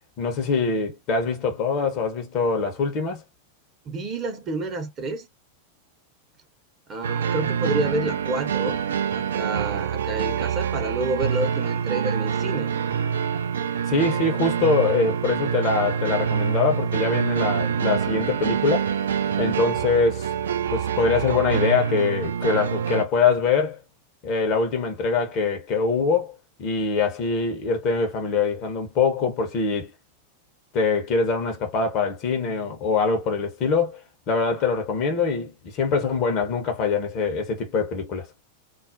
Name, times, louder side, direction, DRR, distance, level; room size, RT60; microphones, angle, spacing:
voice 1, 0.2-3.2 13.9-18.9 19.4-20.3 20.7-23.8 24.2-26.3 26.6-29.9 30.7-34.0 34.3-38.3, left 4 dB, 40° left, 0.8 m, -23 dB
voice 2, 3.9-5.3 6.9-8.8 9.1-12.7, right 2 dB, 30° right, 0.8 m, -29 dB
sound 1, 7.0-23.0, right 7 dB, 65° right, 0.3 m, -26 dB
2.3 x 2.0 x 2.6 m
figure-of-eight pair, 90°, 0 cm